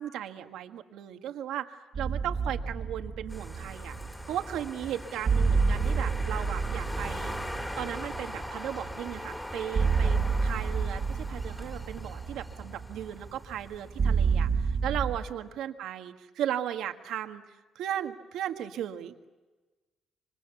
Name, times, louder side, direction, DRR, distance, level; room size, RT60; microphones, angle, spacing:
voice 1, 0.0-3.9 4.3-7.3 7.8-17.4 17.8-19.2, right 10 dB, 85° right, 6 dB, 1.8 m, -36 dB
sound 1, 2.0-15.2, right 5 dB, 45° right, 1.9 m, -30 dB
sound 2, 3.3-14.1, left 1 dB, 10° left, 3.1 m, -41 dB
27.5 x 25.5 x 7.1 m, 1.2 s
cardioid pair, 90°, 0 cm